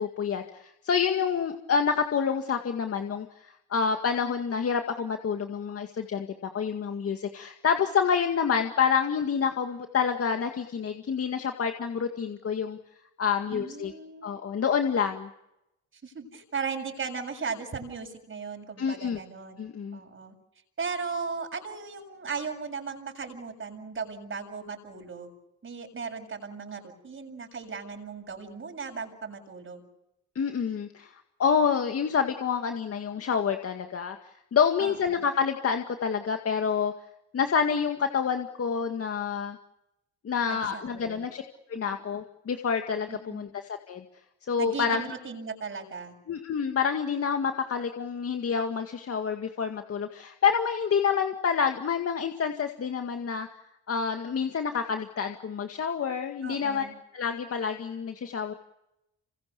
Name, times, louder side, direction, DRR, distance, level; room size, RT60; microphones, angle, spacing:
voice 1, 0.0-12.8 13.2-13.9 14.2-15.3 18.8-19.2 19.6-20.0 30.4-31.1 31.4-34.2 34.5-36.9 37.3-39.6 40.2-41.4 41.7-44.0 44.5-45.1 46.3-53.5 53.9-56.9 57.1-58.5, left 6 dB, 50° left, 5 dB, 2.1 m, -28 dB
voice 2, 13.5-14.3 16.0-19.6 19.9-20.3 20.8-25.3 25.6-29.8 34.8-35.3 40.5-41.2 43.1-43.4 44.6-46.1 56.4-56.9, right 5 dB, 45° right, 2 dB, 7.2 m, -37 dB
27.5 x 26.0 x 7.0 m, 0.87 s
cardioid pair, 90°, 30 cm